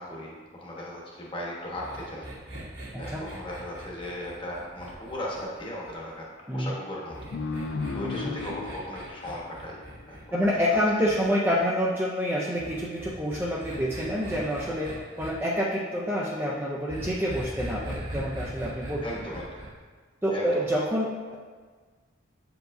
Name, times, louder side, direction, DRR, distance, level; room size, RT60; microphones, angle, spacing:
voice 1, 0.0-2.3 3.0-6.3 6.5-7.2 7.4-9.8 10.1-11.2 19.0-19.5 20.3-20.8, left 1 dB, 25° left, -4 dB, 1.0 m, -37 dB
sound 1, 1.7-6.2 7.1-11.2 12.6-15.3 16.9-19.7, right 1 dB, 60° right, 1.6 m, -40 dB
sound 2, 7.3-10.5, left 4 dB, 70° left, 0.3 m, -35 dB
voice 2, 10.3-14.9 15.2-19.0 20.2-21.4, equal, 10° right, -5 dB, 0.4 m, -27 dB
7.8 x 4.7 x 2.6 m, 1.5 s
head